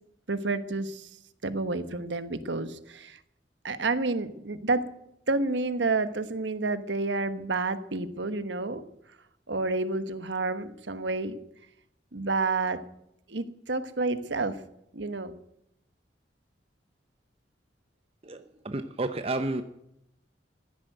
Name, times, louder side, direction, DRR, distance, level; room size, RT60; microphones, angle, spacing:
voice 1, 0.3-1.1 1.4-3.2 3.6-4.9 5.3-8.8 9.5-11.4 12.1-12.8 13.3-14.6 14.9-15.4, right 3 dB, 80° right, 1.2 m, -29 dB
voice 2, 18.2-19.6, right 2 dB, 35° right, 0.8 m, -31 dB
15.5 x 10.0 x 7.9 m
head